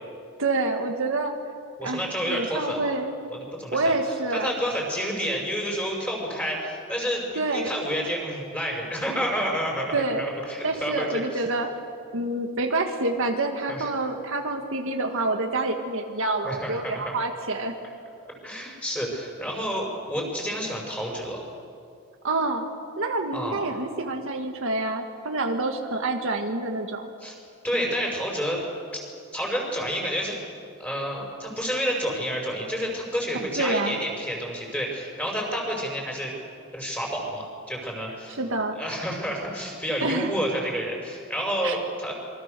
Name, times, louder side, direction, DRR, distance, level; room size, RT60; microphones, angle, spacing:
voice 1, 0.4-1.3 1.8-3.1 3.7-4.5 7.4-7.7 9.9-10.3 10.6-11.7 12.1-17.7 22.2-22.7 23.0-27.1 33.6-34.0 38.4-38.7 40.0-40.3 41.6-41.8, right 2 dB, 60° right, 3 dB, 1.8 m, -27 dB
voice 2, 1.8-2.9 3.3-3.9 4.3-11.4 13.7-13.9 16.4-17.1 18.4-21.4 23.3-23.7 27.2-27.3 27.6-28.6 29.3-30.3 30.8-36.3 36.7-38.4 38.8-42.1, equal, 5° left, 0 dB, 5.9 m, -29 dB
27.0 x 24.5 x 6.8 m, 2.3 s
head